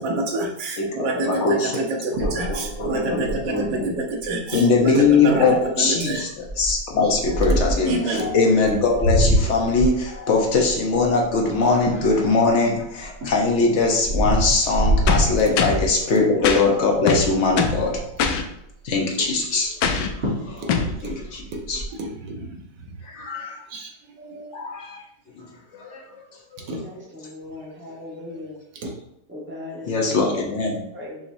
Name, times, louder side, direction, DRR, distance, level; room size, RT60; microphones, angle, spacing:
voice 1, 0.0-1.3 1.8-5.5 5.8-6.2 7.5-7.6 7.9-8.3 15.5-15.6 20.6-20.7 21.0-21.1 21.5-21.6 22.0-22.6 23.7-23.9 24.2-24.5 26.7-26.8 28.8-28.9, right 2 dB, 80° right, 1 dB, 1.4 m, -27 dB
voice 2, 0.8-1.8 2.2-3.9 4.5-18.0 18.8-19.7 20.2-21.8 23.0-23.6 24.5-25.0 25.4-26.2 29.8-30.8, left 3 dB, 55° left, -1 dB, 0.9 m, -21 dB
sound 1, 2.2-3.6 4.2-4.3 4.5-4.8 5.3-5.6 6.4-7.9 8.6-12.5 13.0-16.0 16.5-16.7 17.0-17.1 17.4-18.1 19.8-19.9 20.2-20.6 20.9-21.8, right 1 dB, 40° right, 1.3 m, -24 dB
sound 2, 15.1-15.9 16.4-16.6 17.1-17.8 18.2-18.4 19.8-20.1 20.7-20.9, left 5 dB, 80° left, 1.2 m, -22 dB
voice 3, 26.8-28.6 29.3-30.2 30.9-31.2, left 2 dB, 10° right, -5 dB, 1.0 m, -38 dB
6.0 x 2.9 x 2.6 m, 0.80 s
omnidirectional pair, 1.9 m